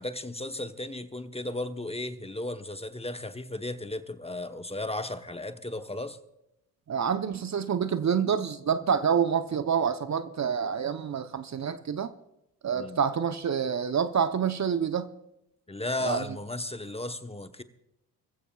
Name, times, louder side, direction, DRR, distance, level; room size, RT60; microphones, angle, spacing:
voice 1, 0.0-6.2 12.7-13.0 15.7-17.6, left 2 dB, 15° left, 1.0 m, -35 dB
voice 2, 6.9-12.1 12.6-15.1 16.0-16.2, right 7 dB, 40° right, 0.9 m, -27 dB
23.0 x 15.0 x 2.4 m
hypercardioid pair, 45°, 45 cm